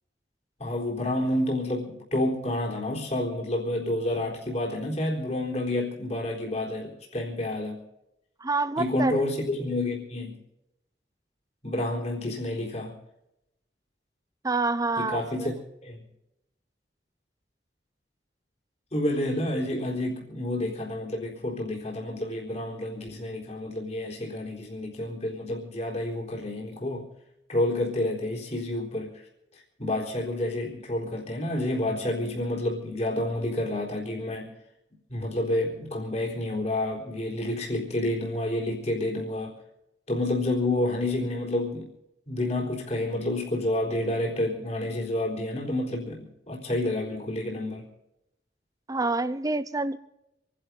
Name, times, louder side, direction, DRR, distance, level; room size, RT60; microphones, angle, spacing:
voice 1, 0.6-7.8 8.8-10.4 11.6-12.9 15.0-15.5 15.8-16.0 18.9-27.1 27.5-29.1 29.8-34.5 35.1-39.5 40.1-41.9 42.3-47.9, left 1 dB, 40° left, -1 dB, 4.0 m, -29 dB
voice 2, 8.4-9.2 14.4-15.5 48.9-50.0, right 3 dB, 20° right, 14 dB, 0.8 m, -27 dB
27.5 x 11.5 x 4.0 m, 0.88 s
head